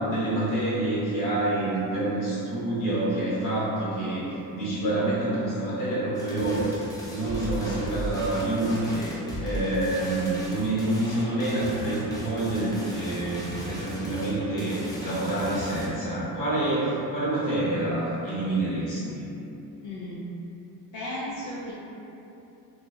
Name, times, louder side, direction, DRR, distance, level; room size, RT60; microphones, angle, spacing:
voice 1, 0.0-19.3, right 1 dB, 55° left, -9 dB, 1.2 m, -27 dB
sound 1, 6.1-15.9, equal, 10° left, 0.6 m, -36 dB
voice 2, 19.8-20.3 20.9-21.7, left 1 dB, 80° left, -8 dB, 0.6 m, -34 dB
2.9 x 2.8 x 2.3 m, 2.9 s
cardioid pair, 95°, 37 cm